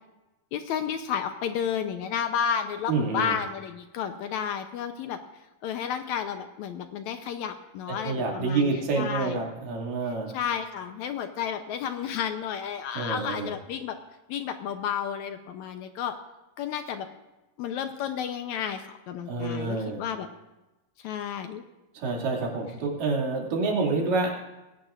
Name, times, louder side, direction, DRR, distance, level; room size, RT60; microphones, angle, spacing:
voice 1, 0.5-5.2 5.6-9.4 10.3-14.0 14.3-16.2 16.6-17.1 17.6-20.3 21.0-21.6, left 8 dB, 75° left, 7 dB, 1.9 m, -32 dB
voice 2, 2.9-3.3 8.0-10.3 12.9-13.5 19.3-20.0 21.9-24.3, right 3 dB, 85° right, -1 dB, 4.1 m, -28 dB
21.5 x 17.5 x 2.5 m, 1.0 s
omnidirectional pair, 3.8 m